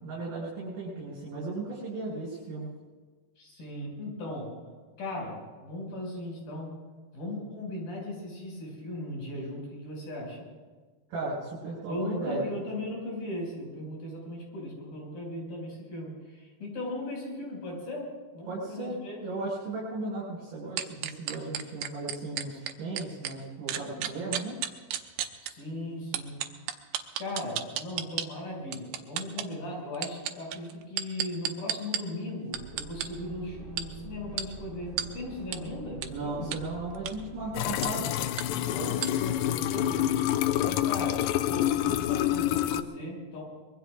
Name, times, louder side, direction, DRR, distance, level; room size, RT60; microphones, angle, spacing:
voice 1, 0.0-2.7 11.1-12.4 18.5-18.9 19.2-24.5 36.1-38.1 38.8-38.9, right 2 dB, 60° right, -6 dB, 6.7 m, -36 dB
voice 2, 3.4-4.5 5.0-6.7 7.1-10.5 11.9-19.3 25.4-26.5 27.2-36.5 38.4-40.1 40.6-43.4, left 1 dB, 65° left, -2 dB, 7.5 m, -38 dB
sound 1, 20.8-23.3 23.7-25.5 26.1-28.3 28.7-29.5 30.0-32.0 32.5-33.1 33.8-33.9 34.4-34.5 35.0-35.1 35.5-35.6 36.0-36.1 36.5-36.6 37.0-37.2 37.8-37.9 38.4-38.5 39.0-39.1, right 11 dB, 90° right, 2.8 m, -31 dB
sound 2, 32.5-37.9, right 4 dB, 30° right, 2.7 m, -45 dB
sound 3, 37.5-42.8, left 12 dB, 80° left, 2.2 m, -27 dB
25.0 x 22.0 x 2.5 m, 1.4 s
omnidirectional pair, 4.5 m